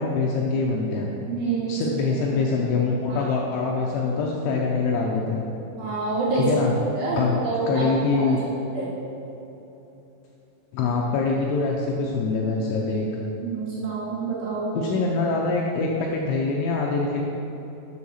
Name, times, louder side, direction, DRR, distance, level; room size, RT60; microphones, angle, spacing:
voice 1, 0.0-1.1 1.7-5.5 6.4-6.7 7.2-8.4 10.7-13.1 14.7-17.2, left 4 dB, 80° left, -1 dB, 2.8 m, -24 dB
voice 2, 1.2-2.1 3.1-3.3 5.8-6.6 6.9-7.9 8.1-8.2 8.7-8.9 13.4-14.7, right 3 dB, 65° right, -7 dB, 3.2 m, -27 dB
7.6 x 6.2 x 5.6 m, 3.0 s
omnidirectional pair, 6.0 m